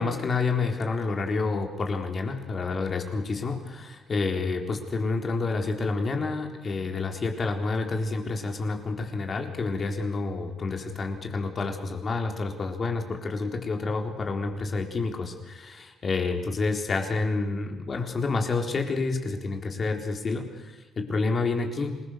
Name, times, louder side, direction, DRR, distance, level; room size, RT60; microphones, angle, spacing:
voice 1, 0.0-22.0, left 3 dB, 35° left, 4 dB, 3.9 m, -29 dB
27.0 x 21.0 x 6.7 m, 1.2 s
cardioid pair, 115°, 0 cm